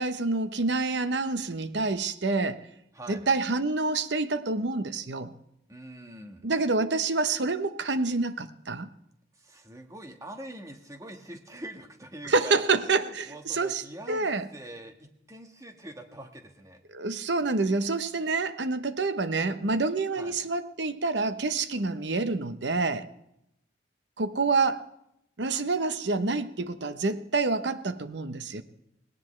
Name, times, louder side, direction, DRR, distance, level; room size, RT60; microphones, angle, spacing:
voice 1, 0.0-2.6 3.1-5.3 6.4-8.9 12.2-14.5 16.9-23.1 24.2-24.8 25.4-28.6, right 3 dB, 70° right, 11 dB, 0.9 m, -27 dB
voice 2, 2.9-3.2 5.7-6.4 9.4-12.6 13.0-16.8 20.2-20.3, right 1 dB, 20° right, 4 dB, 1.4 m, -44 dB
19.0 x 17.5 x 3.2 m, 0.81 s
head